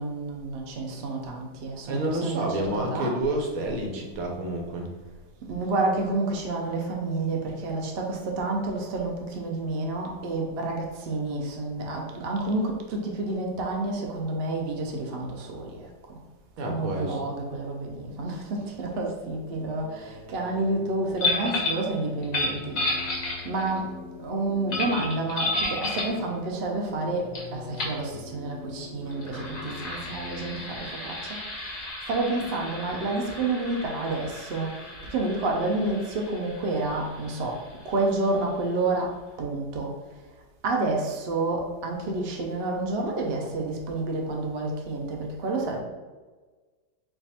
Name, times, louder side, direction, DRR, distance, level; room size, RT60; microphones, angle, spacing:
voice 1, 0.0-3.2 5.5-16.2 16.6-40.3 40.6-45.8, right 2 dB, 80° right, 0 dB, 0.5 m, -29 dB
voice 2, 1.9-4.9 16.6-17.2, right 1 dB, 60° right, 1 dB, 1.1 m, -29 dB
sound 1, 19.5-30.8, left 3 dB, 20° left, 0.8 m, -44 dB
sound 2, 21.2-21.8 22.2-23.8 24.7-26.2 27.3-27.4 27.7-28.0 29.1-38.3, left 2 dB, 50° left, 1.3 m, -32 dB
4.5 x 2.5 x 4.2 m, 1.3 s
omnidirectional pair, 2.0 m